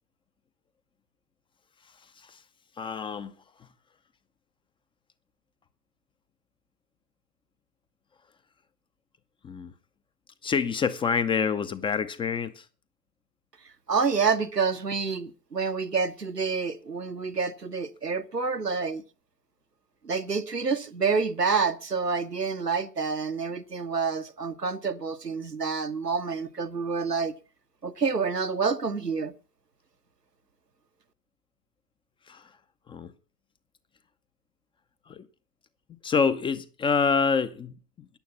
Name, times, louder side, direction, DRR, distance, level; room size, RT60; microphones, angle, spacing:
voice 1, 2.8-3.3 9.4-9.7 10.4-12.7 32.3-32.5 32.9-33.1 35.1-35.3 36.0-38.1, left 6 dB, 10° left, 0.6 m, -27 dB
voice 2, 13.9-19.0 20.0-27.3 27.8-29.3, right 5 dB, 90° right, 1.2 m, -28 dB
14.0 x 10.0 x 7.0 m
figure-of-eight pair, 95°, 47 cm